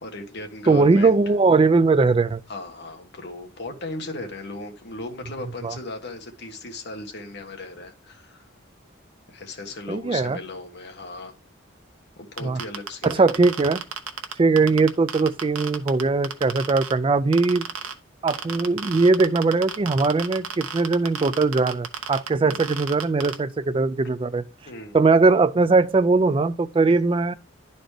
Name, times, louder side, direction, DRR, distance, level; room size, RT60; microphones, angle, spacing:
voice 1, 0.0-1.2 2.5-8.4 9.3-11.3 12.2-13.3 22.4-22.6 24.7-25.1 26.9-27.0, left 2 dB, 55° left, 1.3 m, -37 dB
voice 2, 0.7-2.4 5.6-5.8 9.9-10.4 12.4-12.6 13.0-13.8 14.4-17.7 18.2-24.4 24.9-27.3, right 3 dB, 25° right, 0.3 m, -20 dB
sound 1, 12.4-16.9 17.3-17.9 18.3-23.3, right 7 dB, 85° right, 1.0 m, -31 dB
11.0 x 4.0 x 3.3 m
head